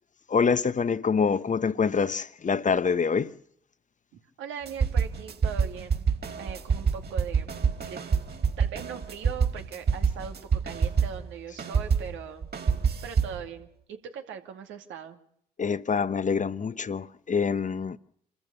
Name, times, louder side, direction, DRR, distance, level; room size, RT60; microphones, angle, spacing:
voice 1, 0.3-3.4 15.6-18.0, left 5 dB, 40° left, 1.0 m, -26 dB
voice 2, 4.4-6.1 6.4-7.5 7.9-8.0 8.6-10.4 10.6-12.5 13.0-15.2, right 7 dB, 75° right, 2.4 m, -40 dB
sound 1, 4.7-11.3 11.6-13.4, right 6 dB, 55° right, 4.5 m, -27 dB
27.5 x 14.5 x 6.7 m
hypercardioid pair, 45°, 20 cm